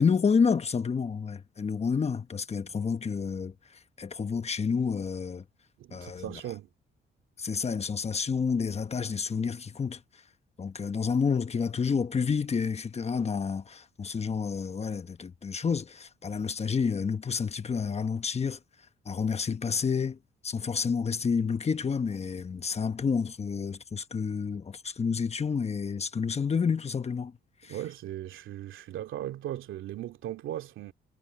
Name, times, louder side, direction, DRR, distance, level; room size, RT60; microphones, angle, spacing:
voice 1, 0.0-3.5 4.0-5.4 5.9-6.3 7.4-10.0 10.6-18.6 19.1-20.2 20.4-27.3 27.6-27.7, left 5 dB, 35° left, 1.2 m, -29 dB
voice 2, 5.8-6.7 27.6-30.9, right 12 dB, 80° right, 2.5 m, -38 dB
cardioid pair, 90°, 20 cm